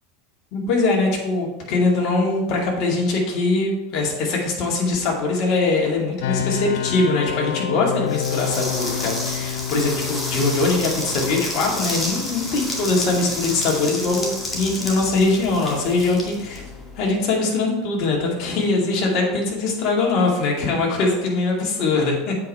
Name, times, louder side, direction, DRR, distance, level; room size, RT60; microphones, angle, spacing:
voice 1, 0.5-16.6 17.0-22.3, left 3 dB, 50° left, -1 dB, 2.3 m, -22 dB
sound 1, 6.2-19.0, left 10 dB, 65° left, 0.4 m, -32 dB
sound 2, 8.1-17.1, left 1 dB, 15° left, 2.1 m, -30 dB
8.1 x 5.1 x 4.3 m, 0.98 s
hypercardioid pair, 80°, 0 cm